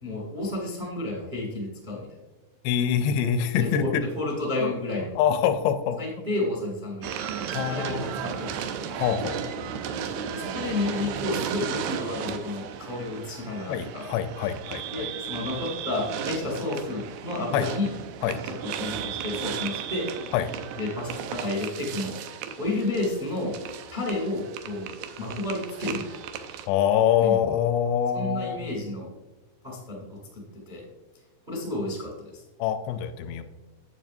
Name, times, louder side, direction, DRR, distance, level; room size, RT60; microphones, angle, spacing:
voice 1, 0.0-2.1 3.6-3.9 4.1-5.2 6.0-8.7 10.3-14.1 14.9-17.9 18.4-20.1 20.8-22.2 22.6-23.5 23.9-24.9 25.2-26.2 27.2-27.4 28.1-29.1 29.6-30.8 31.5-32.4, left 2 dB, 25° right, -2 dB, 0.9 m, -31 dB
voice 2, 2.6-4.0 4.6-4.7 5.2-6.0 7.5-8.2 8.9-9.5 13.7-15.1 17.5-17.7 18.2-18.4 20.3-20.5 26.7-28.8 32.6-33.4, left 9 dB, 85° left, 9 dB, 2.6 m, -25 dB
sound 1, 7.0-26.7, right 8 dB, 85° right, 2.0 m, -35 dB
9.4 x 8.8 x 2.7 m, 1.1 s
omnidirectional pair, 5.0 m